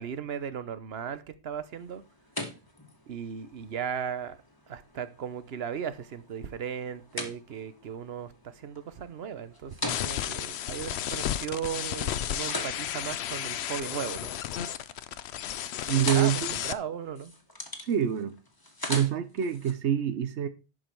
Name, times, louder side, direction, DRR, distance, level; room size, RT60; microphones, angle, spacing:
voice 1, 0.0-2.0 3.1-4.4 4.7-14.3 16.1-17.3, right 8 dB, 65° right, 1.1 m, -36 dB
sound 1, 1.6-11.6 12.1-14.4 14.7-15.1 15.4-19.7, left 1 dB, 20° left, 1.5 m, -41 dB
sound 2, 9.9-16.7, left 10 dB, 75° left, 0.9 m, -33 dB
voice 2, 15.9-16.6 17.8-18.3 18.9-20.5, right 9 dB, 85° right, 1.1 m, -26 dB
11.0 x 5.2 x 4.5 m
omnidirectional pair, 1.1 m